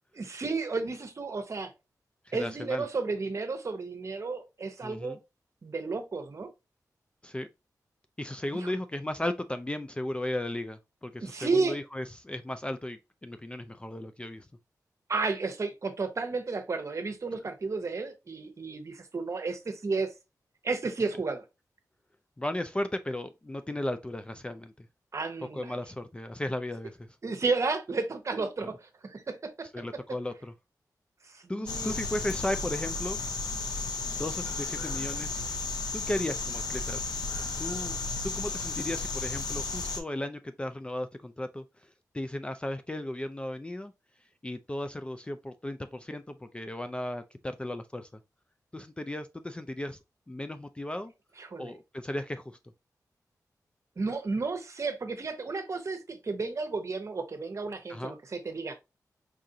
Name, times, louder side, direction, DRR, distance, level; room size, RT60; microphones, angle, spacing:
voice 1, 0.2-1.7 2.3-5.2 5.6-6.5 8.5-8.7 11.2-11.8 15.1-20.1 20.6-21.4 25.1-25.8 27.2-29.7 31.2-32.0 51.4-51.8 54.0-58.7, right 4 dB, 45° right, 0.9 m, -32 dB
voice 2, 2.3-2.8 4.8-5.2 7.2-7.5 8.2-14.5 22.4-24.7 25.5-27.0 28.6-28.7 29.7-30.5 31.5-33.2 34.0-35.4 35.9-37.0 37.6-38.0 38.2-41.6 42.1-43.9 44.4-48.1 48.7-50.0 50.3-51.1 51.6-52.6 57.9-58.2, left 1 dB, 15° left, 0.3 m, -35 dB
sound 1, 31.7-40.0, left 3 dB, 85° left, 0.7 m, -33 dB
4.7 x 2.5 x 2.7 m
cardioid pair, 75°, 7 cm